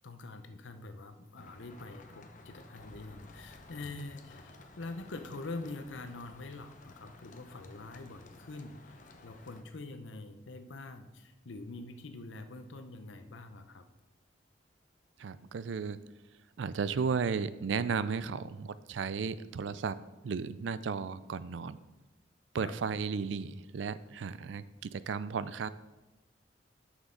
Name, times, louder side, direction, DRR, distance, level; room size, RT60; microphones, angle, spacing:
voice 1, 0.0-8.8 9.2-13.8 18.4-18.5 22.6-22.8, left 2 dB, 85° left, 8 dB, 0.7 m, -45 dB
sound 1, 1.4-9.6, left 2 dB, 45° left, 0.7 m, -54 dB
voice 2, 15.2-16.0 16.6-20.0 20.2-21.8 22.5-24.6 24.9-25.7, right 5 dB, 80° right, 15 dB, 0.4 m, -34 dB
9.2 x 6.4 x 3.8 m, 1.0 s
head